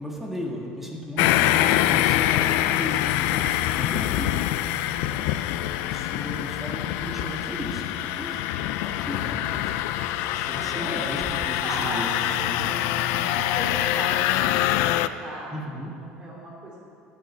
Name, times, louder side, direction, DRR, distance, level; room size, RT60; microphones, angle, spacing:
voice 1, 0.0-5.1 5.8-8.4 8.8-9.7 10.2-11.2 11.5-12.8 15.5-15.9, equal, 5° right, -1 dB, 1.7 m, -36 dB
sound 1, 1.2-15.1, left 13 dB, 75° left, 0.4 m, -25 dB
voice 2, 3.7-4.1 10.5-12.7 13.0-16.8, right 1 dB, 25° right, -3 dB, 2.6 m, -37 dB
Bird, 4.0-11.5, left 3 dB, 20° left, 1.1 m, -45 dB
9.4 x 8.6 x 9.0 m, 2.4 s
cardioid pair, 145°, 3 cm